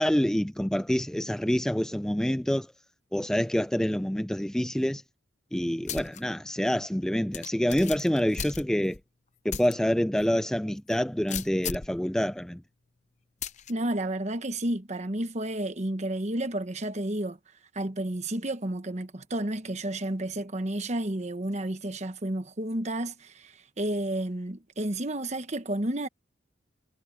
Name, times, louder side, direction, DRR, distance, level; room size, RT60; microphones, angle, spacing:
voice 1, 0.0-2.7 3.1-5.0 5.5-9.0 9.4-12.6, equal, 5° left, 0.3 m, -27 dB
sound 1, 5.9-6.2 6.6-6.7 7.3-9.0 9.5-9.7 10.2-10.3 11.3-12.0 13.4-13.7, left 7 dB, 40° left, 0.7 m, -36 dB
voice 2, 13.7-17.4 17.7-26.1, right 1 dB, 40° right, 1.2 m, -31 dB
head